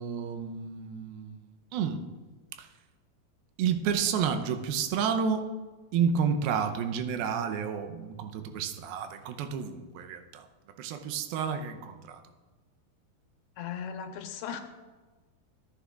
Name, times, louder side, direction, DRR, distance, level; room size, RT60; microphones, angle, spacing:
voice 1, 0.0-1.4 1.7-2.0 2.6-2.7 3.6-5.5 5.9-10.5 10.8-12.2, right 7 dB, 80° right, 7 dB, 2.4 m, -30 dB
voice 2, 13.6-14.6, left 7 dB, 85° left, 5 dB, 3.1 m, -37 dB
17.0 x 10.0 x 2.4 m, 1.3 s
omnidirectional pair, 4.9 m